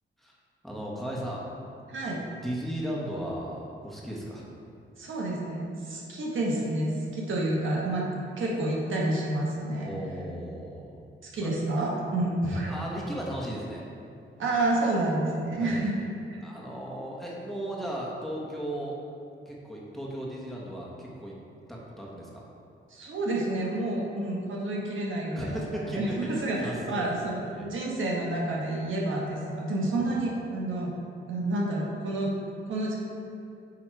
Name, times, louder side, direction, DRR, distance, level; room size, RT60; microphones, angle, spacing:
voice 1, 0.6-1.4 2.4-4.5 9.8-11.0 11.4-11.5 12.6-13.8 15.6-15.8 16.4-19.0 19.4-21.3 21.7-22.4 25.3-27.1 27.5-27.7 29.9-30.1, right 1 dB, ahead, -5 dB, 1.4 m, -36 dB
voice 2, 1.9-2.2 5.0-8.1 8.4-9.9 11.2-12.8 14.4-16.4 22.9-30.9 31.3-32.3 32.7-32.9, right 1 dB, 70° right, -3 dB, 1.3 m, -29 dB
9.0 x 3.5 x 4.6 m, 2.5 s
cardioid pair, 95°, 21 cm